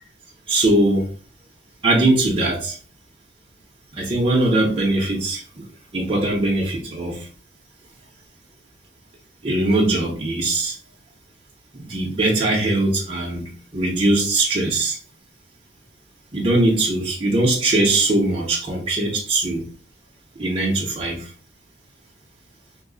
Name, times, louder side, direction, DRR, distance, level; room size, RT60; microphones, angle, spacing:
voice 1, 0.5-1.1 1.8-2.8 3.9-5.4 5.9-7.3 9.4-10.7 11.7-15.0 16.3-19.6 20.4-21.3, right 2 dB, 30° right, -3 dB, 0.6 m, -21 dB
3.0 x 2.1 x 3.7 m, 0.39 s
head